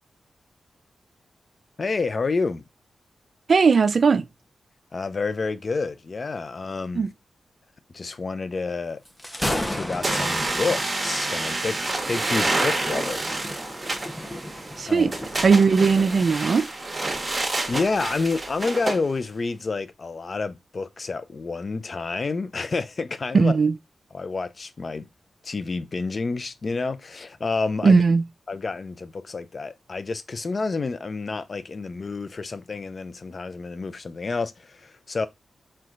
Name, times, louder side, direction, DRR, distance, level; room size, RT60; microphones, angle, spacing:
voice 1, 1.8-2.6 4.9-7.1 7.9-9.0 9.4-13.2 14.9-15.1 17.7-23.5 24.1-25.1 25.4-28.0 28.5-35.3, left 4 dB, 55° left, 0.5 m, -29 dB
voice 2, 3.5-4.2 7.0-7.1 14.8-15.1 15.4-16.7 23.3-23.7 27.8-28.2, right 5 dB, 60° right, 0.3 m, -18 dB
Thunder, 9.0-16.3, left 1 dB, 10° left, 0.9 m, -35 dB
sound 1, 10.0-19.0, right 2 dB, 35° right, 1.2 m, -28 dB
4.3 x 3.7 x 2.5 m
supercardioid pair, 40°, 0 cm